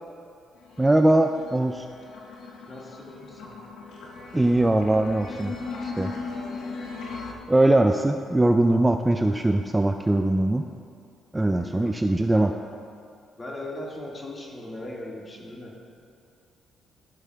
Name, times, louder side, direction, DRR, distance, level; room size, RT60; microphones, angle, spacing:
sound 1, 0.6-7.3, left 4 dB, 80° left, 0.9 m, -38 dB
voice 1, 0.8-1.9 4.3-5.5 5.8-6.1 7.5-10.6 11.3-12.5, right 1 dB, 15° right, 5 dB, 0.3 m, -21 dB
voice 2, 2.7-3.5 11.5-12.5 13.4-15.7, left 1 dB, 25° left, -2 dB, 1.7 m, -39 dB
14.5 x 7.0 x 2.3 m, 2.4 s
cardioid pair, 90°, 0 cm